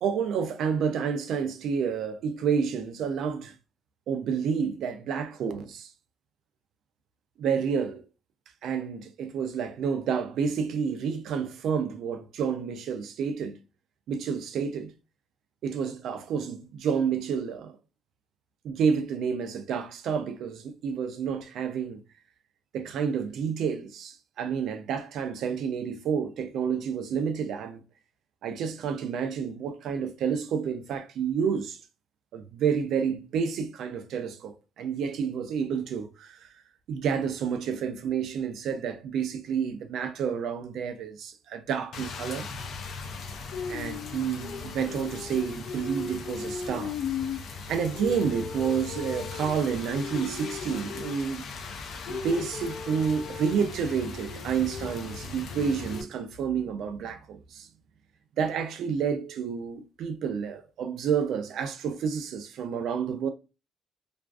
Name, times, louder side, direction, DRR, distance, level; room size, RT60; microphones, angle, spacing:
voice 1, 0.0-3.6 4.1-5.9 7.4-8.0 8.6-13.6 14.1-14.9 15.6-17.8 18.6-22.0 22.7-27.8 28.4-31.8 32.3-36.5 36.9-42.6 43.7-47.0 47.7-51.4 52.1-57.7 58.4-63.3, right 6 dB, 70° right, 0.3 m, -29 dB
Rain, 41.9-56.0, left 5 dB, 60° left, 0.4 m, -36 dB
2.4 x 2.3 x 2.3 m
cardioid pair, 160°, 0 cm